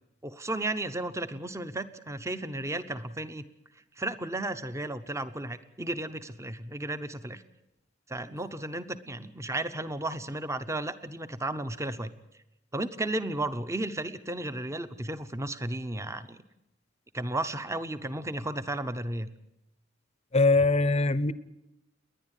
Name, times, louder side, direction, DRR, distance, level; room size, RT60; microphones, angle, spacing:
voice 1, 0.2-3.4 4.0-7.4 8.1-12.1 12.7-16.4 17.1-19.3, right 2 dB, 15° right, 11 dB, 0.9 m, -34 dB
voice 2, 20.3-21.3, left 3 dB, 35° left, 16 dB, 0.8 m, -22 dB
30.0 x 10.5 x 9.2 m, 0.88 s
head